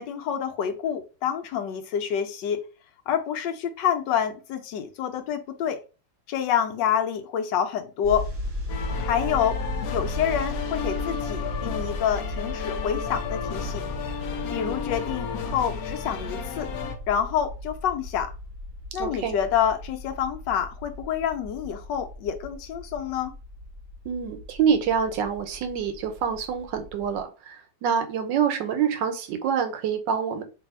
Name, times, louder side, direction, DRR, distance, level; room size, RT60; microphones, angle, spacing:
voice 1, 0.0-2.7 3.1-5.8 6.3-8.3 9.0-9.6 9.9-13.8 14.5-16.7 17.1-18.3 18.9-23.3, left 8 dB, 85° left, 1.3 m, -27 dB
sound 1, 8.0-27.2, left 1 dB, 45° right, 0.8 m, -36 dB
sound 2, 8.7-16.9, left 7 dB, 65° left, 1.0 m, -33 dB
voice 2, 19.0-19.4 24.0-30.4, right 7 dB, 85° right, 1.4 m, -26 dB
3.1 x 2.6 x 4.2 m
omnidirectional pair, 1.9 m